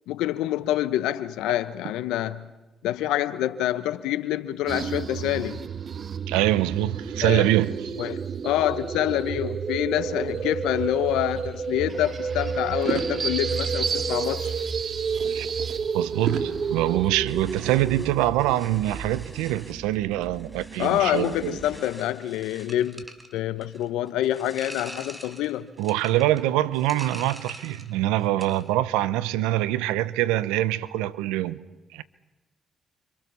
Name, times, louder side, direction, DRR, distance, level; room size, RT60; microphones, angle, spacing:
voice 1, 0.1-2.5 2.8-5.6 7.2-7.5 8.0-14.5 20.8-23.0 23.3-25.7, left 13 dB, 85° left, 1.1 m, -26 dB
sound 1, 4.7-21.8, right 6 dB, 55° right, 1.3 m, -31 dB
voice 2, 6.3-7.8 15.2-15.5 15.9-21.6 25.8-31.6 31.9-32.0, right 15 dB, 90° right, 0.8 m, -24 dB
sound 2, 8.2-11.1 11.3-12.2 12.7-15.8 16.2-18.5, right 6 dB, 70° right, 3.1 m, -38 dB
sound 3, 17.2-28.0 28.2-28.7, right 1 dB, 15° right, 4.6 m, -45 dB
29.5 x 25.5 x 7.1 m
supercardioid pair, 55°, 0 cm